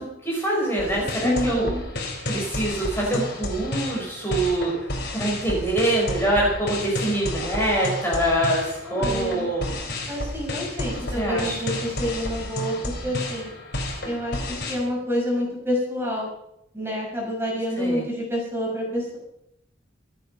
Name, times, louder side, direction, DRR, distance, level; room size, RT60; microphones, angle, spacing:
voice 1, 0.0-1.7 2.3-4.7 5.1-9.7 11.1-11.6 17.8-18.0, right 1 dB, 10° left, -4 dB, 5.1 m, -24 dB
sound 1, 0.8-14.8, left 1 dB, 55° left, 4.0 m, -31 dB
voice 2, 1.2-1.8 8.9-9.5 10.1-13.5 14.0-16.3 16.7-19.2, equal, 10° right, -2 dB, 6.1 m, -28 dB
27.0 x 8.9 x 5.5 m, 0.80 s
head